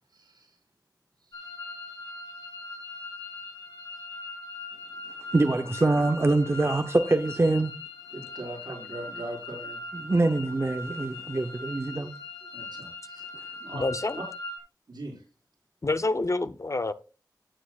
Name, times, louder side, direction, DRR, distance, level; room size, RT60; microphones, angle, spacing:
voice 1, 0.1-0.6 1.3-1.4 8.1-9.8 12.5-13.2 13.6-13.9 14.9-15.2, right 1 dB, 85° right, 5.2 m, -40 dB
sound 1, 1.3-14.6, left 2 dB, 70° left, 4.2 m, -40 dB
voice 2, 5.3-7.7 9.9-12.1, right 2 dB, 35° right, 0.8 m, -24 dB
voice 3, 13.7-14.2 15.8-16.9, left 2 dB, 45° left, 0.7 m, -27 dB
16.0 x 7.3 x 2.4 m
wide cardioid pair, 60°, 7 cm